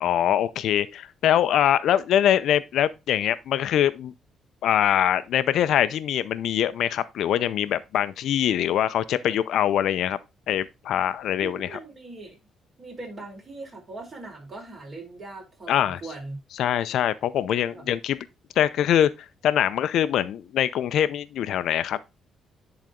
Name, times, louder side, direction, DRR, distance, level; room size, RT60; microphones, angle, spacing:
voice 1, 0.0-4.1 4.6-10.2 10.5-11.8 15.7-16.0 16.6-18.2 18.6-19.1 19.4-22.0, left 10 dB, 75° left, 0.6 m, -23 dB
voice 2, 11.4-12.4 12.8-16.4 17.7-17.9, right 2 dB, 40° right, 4.8 m, -40 dB
10.5 x 4.1 x 3.7 m
cardioid pair, 90°, 0 cm